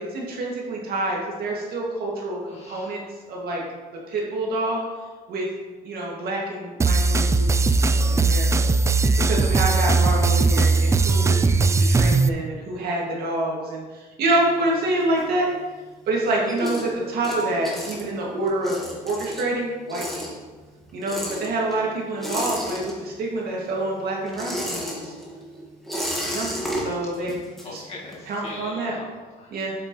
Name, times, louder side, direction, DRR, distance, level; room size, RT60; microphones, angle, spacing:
voice 1, 0.0-3.0 3.3-3.6 4.1-4.8 5.3-5.5 5.8-8.7 9.3-15.5 16.1-18.8 19.0-20.2 20.9-25.1 26.3-27.4 27.7-27.8 28.3-28.9 29.5-29.7, right 2 dB, 65° right, -3 dB, 2.3 m, -27 dB
voice 2, 2.5-3.0 27.1-27.3 27.6-29.6, left 2 dB, 40° left, -3 dB, 1.9 m, -41 dB
sound 1, 6.8-12.3, right 3 dB, 15° right, 0.3 m, -19 dB
sound 2, 14.2-15.8 16.2-23.4 23.6-28.3, equal, ahead, 1.9 m, -33 dB
7.7 x 7.4 x 3.2 m, 1.3 s
cardioid pair, 110°, 17 cm